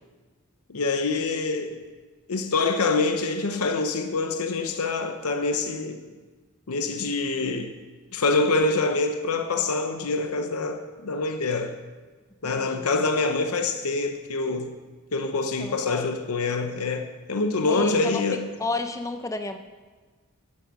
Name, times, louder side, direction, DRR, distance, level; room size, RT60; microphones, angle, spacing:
voice 1, 0.7-1.8 2.3-6.0 6.7-7.8 8.1-11.7 12.4-14.7 15.1-18.5, left 3 dB, 85° left, 0.8 m, -25 dB
voice 2, 12.4-12.9 15.6-16.0 17.7-18.2 18.6-19.6, left 3 dB, 15° left, 0.5 m, -32 dB
10.5 x 9.1 x 6.1 m
head